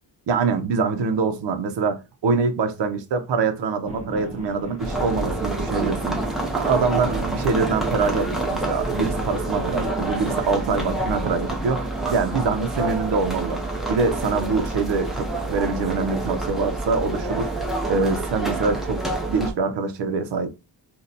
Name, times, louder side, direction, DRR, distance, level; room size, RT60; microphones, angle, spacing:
voice 1, 0.3-6.2 6.5-13.6 13.9-17.5 17.9-19.0 19.3-20.5, right 4 dB, 75° right, 0.7 m, -24 dB
sound 1, 3.9-11.7, right 1 dB, 15° right, 0.9 m, -36 dB
sound 2, 4.8-19.5, right 2 dB, ahead, 0.6 m, -27 dB
2.8 x 2.1 x 3.7 m
wide cardioid pair, 150°, 43 cm